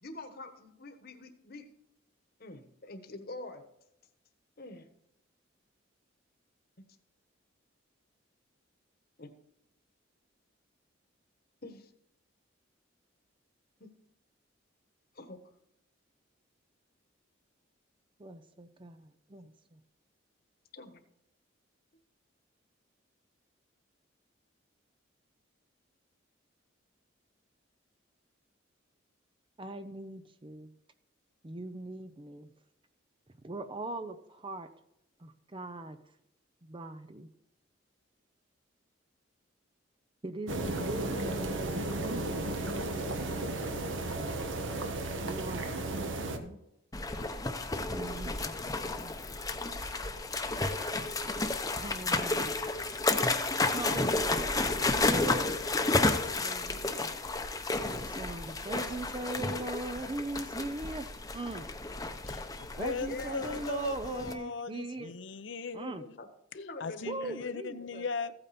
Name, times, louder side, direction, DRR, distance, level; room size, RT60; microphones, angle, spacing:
voice 1, 0.0-1.7 2.4-3.6 4.6-4.9 6.8-6.9 9.2-9.3 11.6-11.9 13.8-13.9 15.1-15.4 20.7-21.0 63.0-63.4 66.2-66.3 66.5-67.9, left 2 dB, 50° left, 8 dB, 1.3 m, -45 dB
voice 2, 18.2-19.8 29.6-30.7 31.4-32.5 33.4-34.7 35.2-36.0 36.6-37.3 40.2-42.8 43.1-43.4 45.2-46.6 47.9-49.2 51.8-52.5 53.7-57.0 57.8-61.7 62.8-65.1 65.7-66.0 67.1-68.1, right 2 dB, 25° right, 10 dB, 0.6 m, -41 dB
sound 1, 40.5-46.4, right 2 dB, 75° right, 1.4 m, -34 dB
sound 2, 46.9-64.3, left 2 dB, 20° left, 0.8 m, -32 dB
voice 3, 62.8-66.2 66.5-68.4, left 4 dB, 65° left, 14 dB, 0.7 m, -38 dB
15.0 x 8.9 x 4.3 m, 0.82 s
head